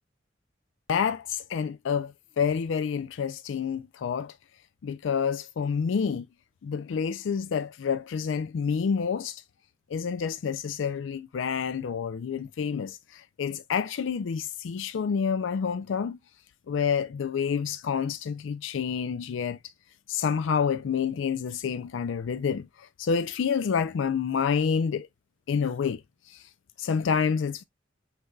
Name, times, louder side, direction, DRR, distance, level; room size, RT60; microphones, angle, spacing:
voice 1, 0.9-4.3 4.8-6.3 6.6-9.4 9.9-16.2 16.7-19.6 20.1-25.1 25.5-26.0 26.3-26.5 26.8-27.6, left 6 dB, 85° left, 0.4 m, -28 dB
6.4 x 3.3 x 2.3 m
head